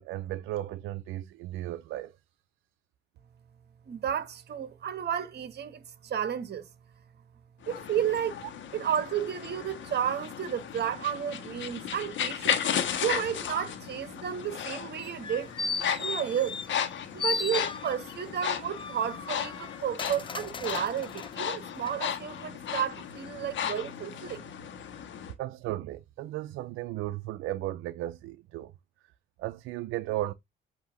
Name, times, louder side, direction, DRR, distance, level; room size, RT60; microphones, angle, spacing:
voice 1, 0.0-2.2 25.4-28.7 29.4-30.3, right 15 dB, 90° right, 0.5 m, -35 dB
voice 2, 3.9-6.7 7.7-8.4 8.7-12.6 13.0-15.5 16.0-16.6 17.1-24.4, right 9 dB, 55° right, 1.3 m, -32 dB
sound 1, 7.6-25.3, left 8 dB, 75° left, 1.3 m, -35 dB
sound 2, 15.0-16.9 17.2-18.2 18.7-21.3 21.8-21.9, left 4 dB, 25° left, 0.6 m, -36 dB
8.2 x 2.8 x 5.0 m
cardioid pair, 90°, 20 cm